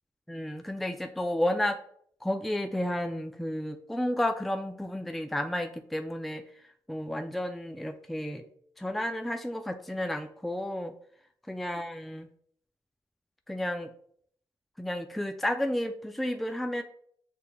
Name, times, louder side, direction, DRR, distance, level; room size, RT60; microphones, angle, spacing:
voice 1, 0.3-1.8 2.2-6.4 6.9-8.4 8.8-10.9 11.5-12.3 13.5-13.9 14.8-16.8, left 1 dB, ahead, 6 dB, 0.3 m, -32 dB
6.8 x 3.3 x 2.2 m, 0.64 s
cardioid pair, 75°, 9 cm